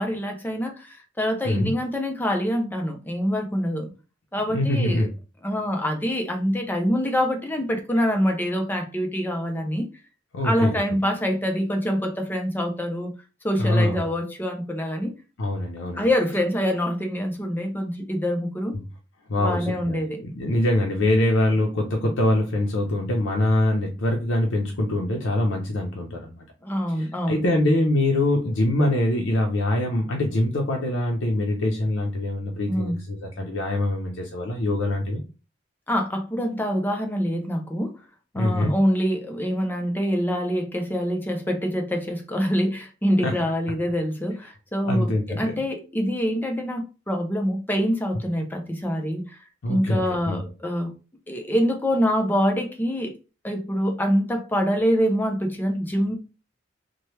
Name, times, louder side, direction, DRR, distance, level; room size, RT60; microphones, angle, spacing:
voice 1, 0.0-3.9 4.3-5.1 5.4-9.9 10.4-13.1 13.4-15.1 16.0-18.7 19.4-20.2 26.6-27.4 32.7-33.0 35.9-38.0 38.3-50.9 51.3-53.1 53.4-56.1, equal, 10° left, 0.5 m, -25 dB
voice 2, 4.5-5.1 10.3-10.8 13.6-14.0 15.4-16.1 18.7-18.8 19.3-20.0 20.4-26.4 26.9-35.2 38.3-38.7 43.2-43.3 44.8-45.4 49.6-50.4, left 1 dB, 80° left, 0.6 m, -24 dB
2.9 x 2.1 x 3.1 m
head